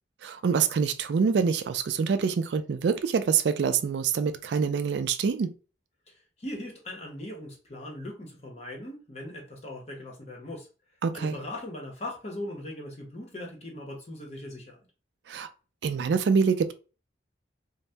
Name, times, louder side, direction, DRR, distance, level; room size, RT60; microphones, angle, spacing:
voice 1, 0.2-5.5 11.0-11.3 15.3-15.5 15.8-16.7, right 6 dB, 80° right, 0.3 m, -25 dB
voice 2, 6.1-10.7 11.1-14.8, left 1 dB, 40° left, 0.7 m, -39 dB
2.7 x 2.0 x 3.2 m
head